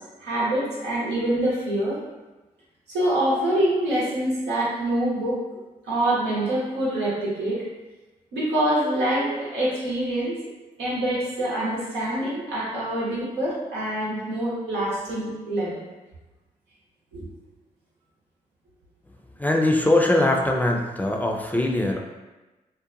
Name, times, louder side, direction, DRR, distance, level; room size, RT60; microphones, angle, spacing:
voice 1, 0.2-2.0 2.9-5.4 5.9-7.6 8.3-10.4 10.8-15.8 17.1-17.2, right 1 dB, 85° right, -7 dB, 0.8 m, -25 dB
voice 2, 19.4-22.0, left 1 dB, 10° left, 1 dB, 0.4 m, -21 dB
2.6 x 2.1 x 2.6 m, 1.1 s
supercardioid pair, 45°, 17 cm